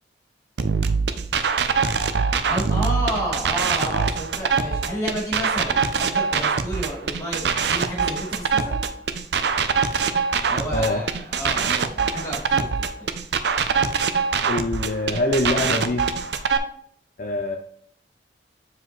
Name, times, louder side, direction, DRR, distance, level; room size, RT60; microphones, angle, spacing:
sound 1, 0.6-16.6, right 5 dB, 70° right, 0.5 m, -23 dB
voice 1, 2.5-8.8 10.5-12.6 13.0-13.1, right 1 dB, 20° left, -7 dB, 2.9 m, -30 dB
voice 2, 10.7-11.0 14.5-16.0 17.2-17.6, left 2 dB, 45° left, 3 dB, 0.5 m, -24 dB
7.7 x 4.8 x 3.1 m, 0.64 s
head